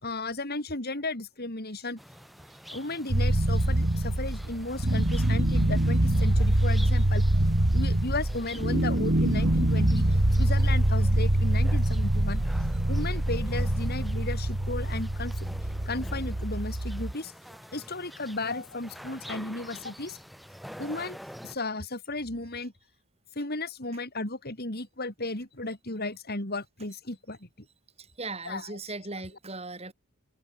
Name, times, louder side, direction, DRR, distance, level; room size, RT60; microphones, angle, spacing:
voice 1, 0.0-2.0 2.7-7.2 7.7-10.1 10.3-12.4 12.9-15.3 15.9-17.3 17.7-20.2 20.8-21.2 21.4-22.7 23.3-27.5 28.4-28.8, left 2 dB, 45° left, 4.6 m, -34 dB
sound 1, 2.0-21.6, equal, ahead, 6.0 m, -45 dB
sound 2, 3.1-17.1, right 1 dB, 50° right, 1.8 m, -25 dB
voice 2, 28.0-29.9, right 3 dB, 30° right, 4.5 m, -39 dB
head